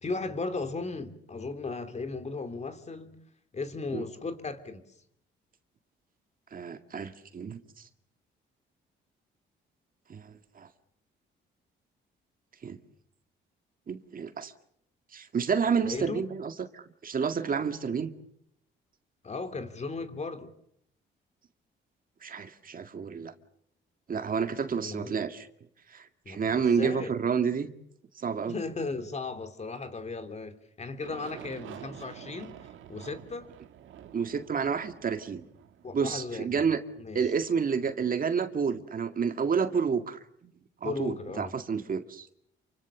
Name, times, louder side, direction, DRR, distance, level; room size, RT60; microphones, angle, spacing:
voice 1, 0.0-3.2 3.5-4.9 15.8-16.2 19.2-20.5 24.8-25.1 26.2-27.1 28.5-33.5 35.8-36.7 37.0-37.2 40.8-41.5, left 3 dB, 35° left, 3.1 m, -36 dB
voice 2, 6.5-7.6 10.1-10.7 12.6-12.8 13.9-14.5 15.1-18.1 22.2-23.3 24.1-25.5 25.9-27.7 28.2-28.5 34.1-35.4 35.9-36.8 37.1-40.5 40.8-42.3, right 6 dB, 45° right, 2.0 m, -30 dB
Aircraft, 31.0-37.7, right 10 dB, 80° right, 2.0 m, -48 dB
28.5 x 24.5 x 7.3 m
cardioid pair, 90°, 20 cm